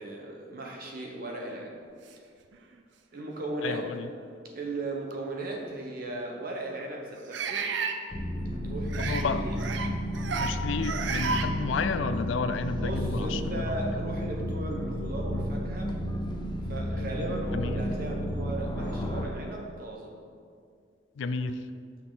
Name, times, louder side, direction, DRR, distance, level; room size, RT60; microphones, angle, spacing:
voice 1, 0.0-1.8 3.1-3.8 4.5-7.7 8.5-9.6 12.8-15.9 16.7-20.1, right 2 dB, 50° right, 0 dB, 1.0 m, -36 dB
sound 1, 2.5-2.6 3.4-3.5 5.1-5.2 7.3-8.0 8.9-9.2 9.6-9.9 10.1-10.5 10.8-11.5, right 5 dB, 70° right, 0.5 m, -31 dB
voice 2, 3.6-4.1 9.0-9.4 10.3-13.7 17.5-17.9 21.2-21.6, left 5 dB, 85° left, 11 dB, 0.4 m, -31 dB
sound 2, 8.1-19.3, equal, 25° left, 0.5 m, -32 dB
6.4 x 5.6 x 3.9 m, 2.2 s
head